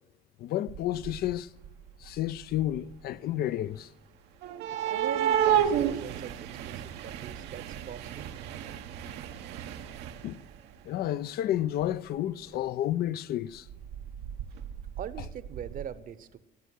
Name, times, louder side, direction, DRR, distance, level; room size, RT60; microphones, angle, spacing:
voice 1, 0.4-1.5 2.0-3.9 10.2-10.4 10.9-13.7, left 12 dB, 65° left, 0.5 m, -31 dB
sound 1, 0.7-1.4 1.6-2.9 4.4-10.6 11.9-12.0 12.5-12.6 13.7-15.8, right 9 dB, 85° right, 1.0 m, -32 dB
voice 2, 4.8-8.3 15.0-16.4, right 9 dB, 55° right, 0.9 m, -42 dB
16.0 x 9.2 x 7.9 m
cardioid pair, 110°, 17 cm